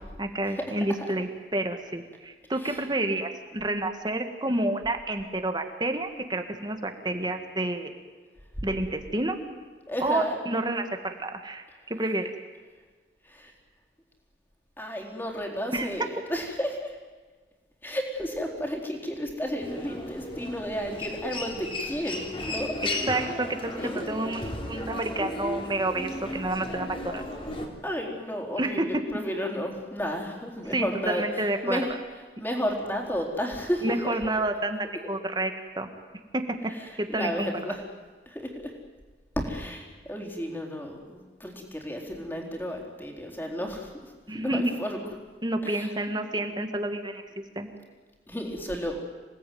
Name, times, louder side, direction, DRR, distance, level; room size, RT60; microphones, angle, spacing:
voice 1, 0.2-7.9 8.6-9.4 10.0-12.3 15.7-15.9 23.1-27.2 28.6-28.9 30.7-31.8 33.8-35.9 36.3-36.6 37.0-37.5 44.3-44.7 45.4-47.2 47.5-47.7, right 1 dB, 25° right, 6 dB, 1.7 m, -29 dB
voice 2, 9.9-10.4 13.2-13.5 14.8-17.0 17.8-22.7 23.8-24.0 27.8-31.9 32.4-34.2 36.7-37.8 38.3-38.7 39.4-45.0 45.6-46.2 48.3-49.0, equal, 10° left, 0 dB, 4.1 m, -32 dB
Human voice, 19.6-27.7, left 1 dB, 30° left, 3.5 m, -35 dB
27.0 x 18.0 x 9.4 m, 1.4 s
head